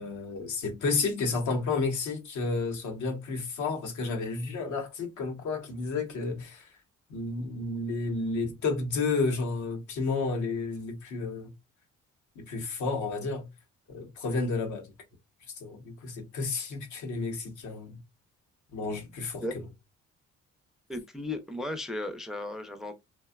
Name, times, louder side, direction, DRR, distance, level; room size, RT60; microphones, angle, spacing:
voice 1, 0.0-6.7 7.1-11.5 12.4-13.5 13.9-14.8 15.6-18.0 18.7-19.4, left 3 dB, 75° left, 0.9 m, -31 dB
voice 2, 20.9-22.9, left 1 dB, ahead, 0.4 m, -35 dB
2.6 x 2.2 x 2.2 m
cardioid pair, 90°, 30 cm